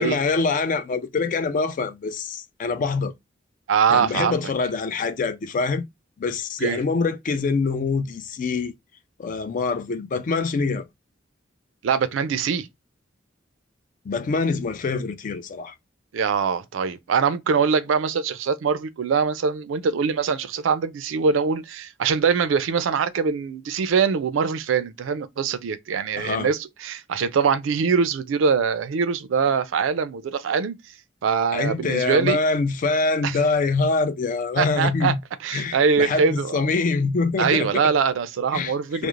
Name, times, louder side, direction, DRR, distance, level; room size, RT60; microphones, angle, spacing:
voice 1, 0.0-3.1 3.9-5.8 6.2-8.7 9.2-10.8 14.1-15.7 26.2-26.5 31.5-35.2 35.5-37.9 38.5-38.7 39.0-39.1, left 4 dB, 45° left, 0.3 m, -24 dB
voice 2, 3.7-4.4 6.6-6.8 11.8-12.7 16.1-30.8 31.2-32.4 33.2-33.4 34.6-35.1 35.4-36.6 37.4-39.1, right 6 dB, 85° right, 0.4 m, -23 dB
2.4 x 2.0 x 2.9 m
head